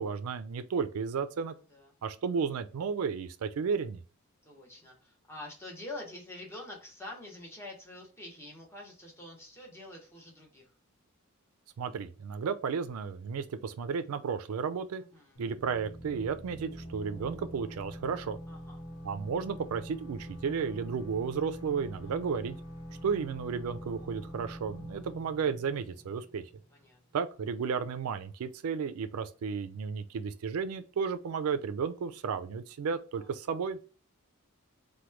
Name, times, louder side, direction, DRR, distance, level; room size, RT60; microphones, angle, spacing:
voice 1, 0.0-1.5 2.0-4.0 11.8-15.0 15.4-18.4 19.0-22.6 23.0-26.5 27.1-33.9, right 6 dB, 80° right, 0.4 m, -33 dB
voice 2, 4.4-10.7 15.0-15.4 18.5-18.8 22.0-22.1 26.7-27.0 33.2-33.3, left 2 dB, 10° left, 0.8 m, -46 dB
sound 1, 15.3-26.8, equal, 65° left, 1.1 m, -45 dB
3.0 x 2.2 x 3.2 m
head